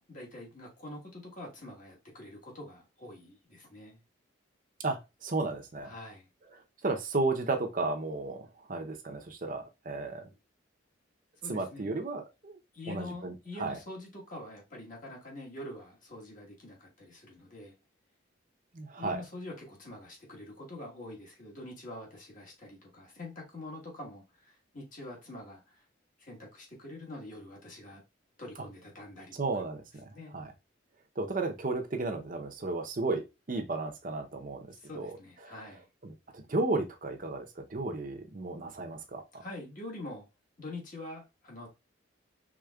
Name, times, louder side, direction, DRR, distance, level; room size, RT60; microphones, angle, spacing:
voice 1, 0.1-4.0 5.8-6.3 11.4-11.9 12.7-17.7 19.0-25.8 26.2-28.0 28.4-29.6 30.1-30.4 34.8-35.8 39.3-40.3 40.6-41.7, left 1 dB, 40° left, 1.5 m, -45 dB
voice 2, 4.8-5.9 6.8-10.3 11.5-12.6 12.9-13.8 18.7-19.2 29.4-30.5 31.2-34.7 34.9-35.1 36.0-39.2, right 3 dB, 40° right, 0.7 m, -33 dB
5.0 x 3.6 x 2.3 m
head